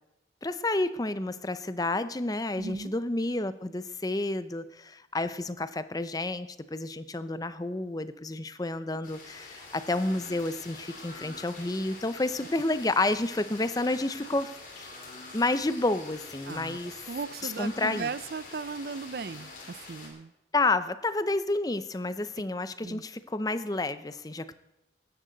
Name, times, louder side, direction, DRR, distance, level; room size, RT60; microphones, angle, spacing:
voice 1, 0.4-14.5 14.8-14.9 15.3-16.9 17.4-18.1 20.5-24.6, left 2 dB, 20° left, 13 dB, 0.6 m, -30 dB
voice 2, 2.5-2.9 16.5-20.3 22.8-23.0, right 5 dB, 55° right, 17 dB, 0.4 m, -37 dB
sound 1, 9.0-20.1, left 3 dB, 45° left, 3.4 m, -45 dB
16.5 x 13.0 x 4.0 m, 0.92 s
head